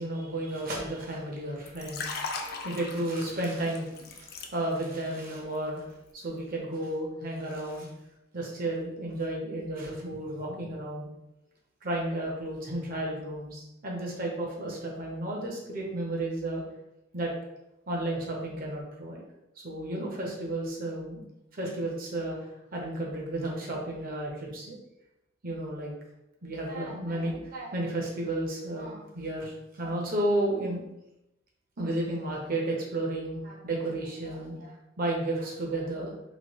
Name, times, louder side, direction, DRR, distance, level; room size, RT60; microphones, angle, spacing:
voice 1, 0.0-5.9 6.1-7.9 8.3-11.1 11.8-16.6 17.1-17.3 17.9-19.2 19.6-21.2 21.5-22.4 22.7-24.8 25.4-25.9 26.4-30.8 31.8-36.2, right 1 dB, 45° right, -2 dB, 0.7 m, -33 dB
Liquid, 1.6-5.0 5.3-5.6, left 4 dB, 50° left, 0.4 m, -38 dB
3.0 x 2.3 x 3.0 m, 0.89 s
head